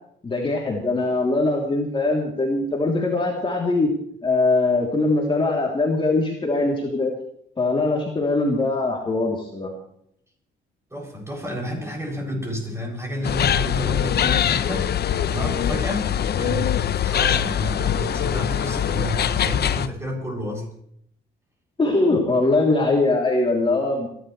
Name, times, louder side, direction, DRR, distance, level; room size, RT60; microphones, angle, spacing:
voice 1, 0.2-3.9 4.2-7.1 7.6-9.7 21.8-24.1, left 2 dB, 25° left, -1 dB, 3.2 m, -21 dB
voice 2, 10.9-14.9 15.3-20.7, left 1 dB, 15° right, 0 dB, 7.3 m, -30 dB
sound 1, 13.2-19.9, left 9 dB, 55° left, 0.8 m, -23 dB
29.5 x 11.5 x 3.3 m, 0.70 s
cardioid pair, 90°, 20 cm